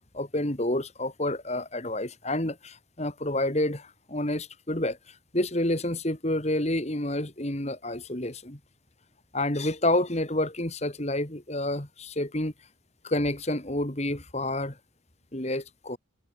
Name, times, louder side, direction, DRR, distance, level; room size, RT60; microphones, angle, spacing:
voice 1, 0.1-8.6 9.3-12.5 13.0-14.8 15.3-16.0, left 1 dB, 35° left, 2.6 m, -29 dB
head